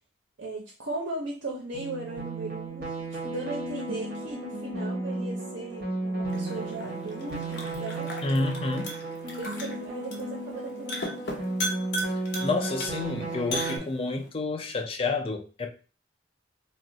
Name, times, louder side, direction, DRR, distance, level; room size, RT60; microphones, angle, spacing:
voice 1, 0.4-8.1 9.3-11.5, right 2 dB, 80° right, 0.6 m, -37 dB
sound 1, 1.7-13.8, right 2 dB, 50° right, 1.0 m, -34 dB
sound 2, 6.3-14.3, equal, 60° left, 0.7 m, -37 dB
voice 2, 8.2-8.9 12.4-15.7, left 3 dB, 30° left, 0.3 m, -29 dB
2.4 x 2.1 x 3.8 m
head